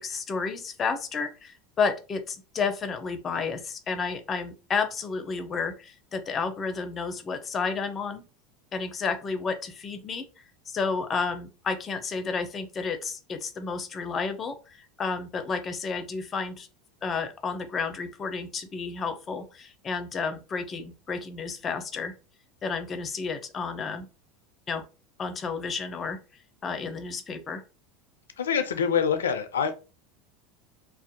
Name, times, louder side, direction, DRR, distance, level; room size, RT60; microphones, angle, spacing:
voice 1, 0.0-8.2 8.7-10.3 10.7-16.7 17.0-22.1 22.6-24.1 24.7-24.8 25.2-26.2 26.6-27.6, left 5 dB, 30° left, 0.5 m, -31 dB
voice 2, 28.4-29.7, left 7 dB, 85° left, 0.3 m, -25 dB
2.5 x 2.0 x 2.7 m
hypercardioid pair, 85°, 0 cm